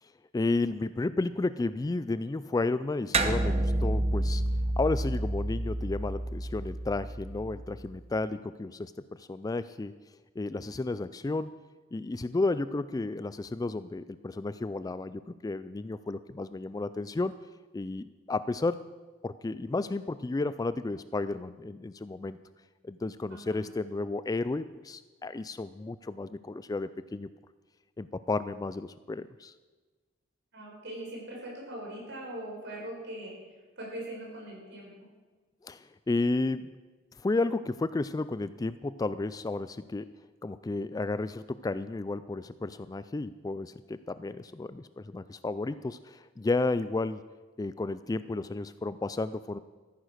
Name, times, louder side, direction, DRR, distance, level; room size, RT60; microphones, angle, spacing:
voice 1, 0.3-4.4 4.8-9.9 10.4-11.5 11.9-17.4 17.7-18.8 19.2-22.4 22.8-27.3 28.0-29.5 35.6-36.7 37.2-40.1 40.4-47.2 47.6-49.6, left 3 dB, 20° left, 14 dB, 0.3 m, -32 dB
sound 1, 3.1-7.9, right 1 dB, 30° right, 0.9 m, -29 dB
voice 2, 23.3-23.6 30.5-33.4 33.8-35.1, right 1 dB, 60° right, -2 dB, 5.3 m, -41 dB
14.0 x 9.6 x 6.4 m, 1.3 s
head